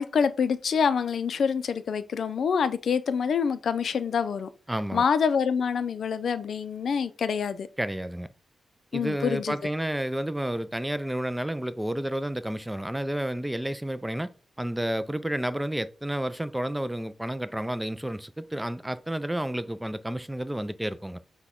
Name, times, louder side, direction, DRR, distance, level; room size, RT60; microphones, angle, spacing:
voice 1, 0.0-4.5 4.9-7.7 8.9-9.7, left 6 dB, 70° left, 0.4 m, -26 dB
voice 2, 4.7-5.0 7.8-8.3 8.9-14.3 14.6-21.2, right 1 dB, 10° right, 0.3 m, -31 dB
5.9 x 2.2 x 3.5 m
cardioid pair, 80°, 0 cm